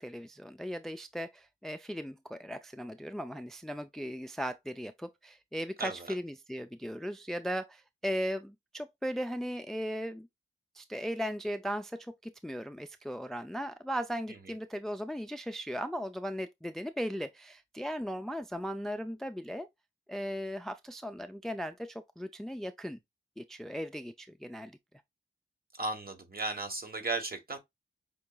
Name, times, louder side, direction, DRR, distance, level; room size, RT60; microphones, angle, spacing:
voice 1, 0.0-10.3 10.7-19.7 20.1-23.0 23.4-24.8, equal, ahead, 0.3 m, -37 dB
voice 2, 25.8-27.6, right 3 dB, 45° right, 1.2 m, -35 dB
5.3 x 2.9 x 2.2 m
cardioid pair, 60°, 21 cm